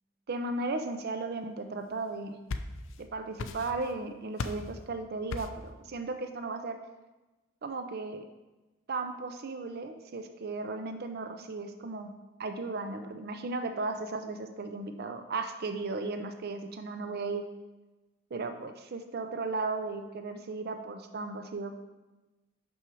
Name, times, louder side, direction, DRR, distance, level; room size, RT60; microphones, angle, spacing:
voice 1, 0.3-2.4 3.0-6.8 7.6-8.2 8.9-12.1 12.4-17.4 18.3-21.8, right 3 dB, 45° right, 7 dB, 0.5 m, -35 dB
sound 1, 2.1-3.0 3.4-4.0 4.4-4.7 5.3-5.7, left 3 dB, 60° left, 0.4 m, -37 dB
6.1 x 6.0 x 4.6 m, 1.1 s
head